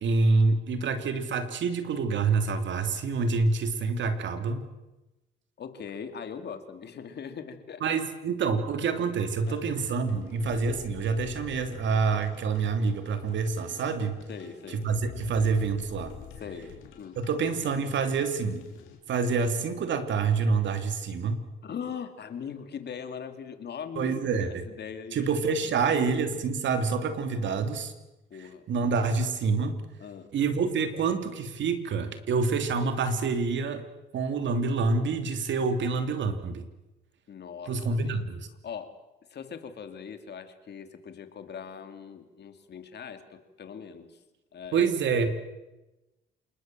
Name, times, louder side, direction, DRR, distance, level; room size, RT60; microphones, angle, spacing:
voice 1, 0.0-4.6 7.8-14.2 14.7-16.1 17.2-18.6 19.1-21.4 24.0-24.7 25.1-27.9 28.7-29.8 30.3-33.8 34.1-36.6 37.7-38.5 44.7-45.4, right 4 dB, 70° right, 8 dB, 2.9 m, -27 dB
voice 2, 5.6-7.8 9.5-9.6 10.3-10.4 14.3-14.9 16.4-17.2 21.6-25.3 25.8-26.2 27.4-27.6 28.3-28.7 30.0-30.3 37.3-38.2 38.6-39.0 39.3-44.2 44.5-44.9, left 7 dB, 55° left, 8 dB, 2.8 m, -41 dB
sound 1, 9.3-19.0, left 7 dB, 90° left, 4.3 m, -47 dB
27.5 x 20.5 x 7.7 m, 1.0 s
cardioid pair, 90°, 20 cm